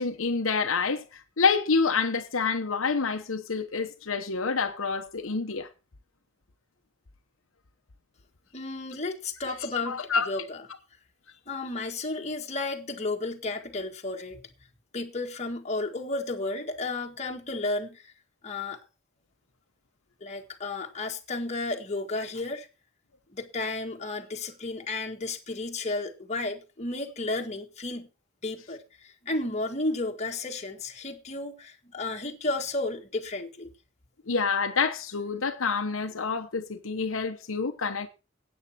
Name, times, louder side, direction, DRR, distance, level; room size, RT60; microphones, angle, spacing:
voice 1, 0.0-5.7 9.9-10.3 34.3-38.1, left 4 dB, 70° left, 1.0 m, -27 dB
voice 2, 8.5-10.0 10.3-10.6 11.5-14.4 14.9-18.1 18.4-18.8 20.2-22.7 23.3-28.1 28.4-33.7, left 2 dB, 30° left, 1.7 m, -33 dB
13.0 x 8.9 x 4.3 m
head